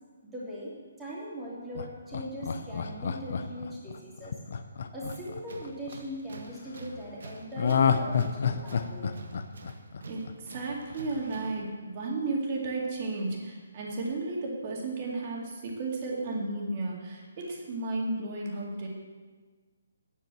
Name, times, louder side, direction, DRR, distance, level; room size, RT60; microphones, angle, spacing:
voice 1, 0.2-4.3 4.9-9.1, equal, 5° right, -7 dB, 2.6 m, -40 dB
Laughter, 1.8-6.0 7.6-10.6 10.9-11.0, left 6 dB, 50° left, 0.7 m, -29 dB
Tools, 5.1-11.7, right 2 dB, 60° right, 1.4 m, -47 dB
voice 2, 10.1-18.9, right 2 dB, 30° right, -2 dB, 2.3 m, -33 dB
8.9 x 8.3 x 7.5 m, 1.4 s
hypercardioid pair, 170°, 0 cm